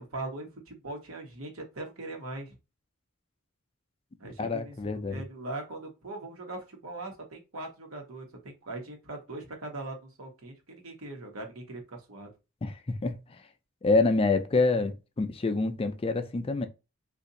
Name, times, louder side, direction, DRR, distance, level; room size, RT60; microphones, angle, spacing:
voice 1, 0.0-2.5 4.2-4.7 5.1-12.3, right 2 dB, 85° right, 1.1 m, -40 dB
voice 2, 4.4-5.2 12.6-13.4 13.8-16.7, left 3 dB, 25° left, 0.4 m, -27 dB
2.7 x 2.5 x 3.9 m
head